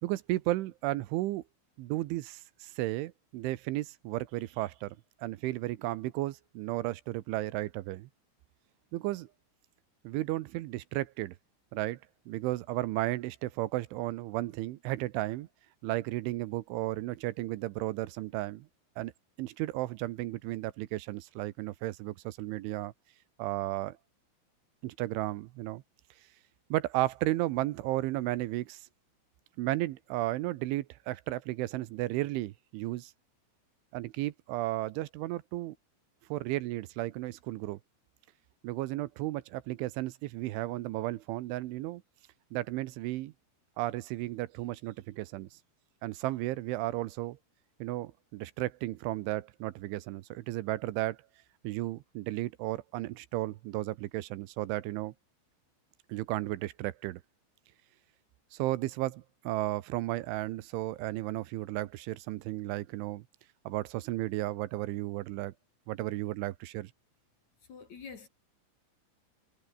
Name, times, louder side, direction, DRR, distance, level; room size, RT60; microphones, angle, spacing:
voice 1, 0.0-1.4 1.8-8.1 8.9-9.3 10.0-11.4 11.7-12.0 12.3-15.5 15.8-18.7 19.0-19.1 19.4-22.9 23.4-24.0 24.8-25.8 26.7-28.8 29.6-33.1 33.9-35.8 36.3-37.8 38.6-42.0 42.5-43.3 43.8-45.6 46.0-47.4 47.8-51.2 51.6-55.1 56.1-57.2 58.5-63.2 63.7-65.5 65.9-66.9, right 17 dB, 80° right, 3.2 m, -34 dB
voice 2, 67.7-68.3, left 6 dB, 45° left, 2.9 m, -46 dB
omnidirectional pair, 6.0 m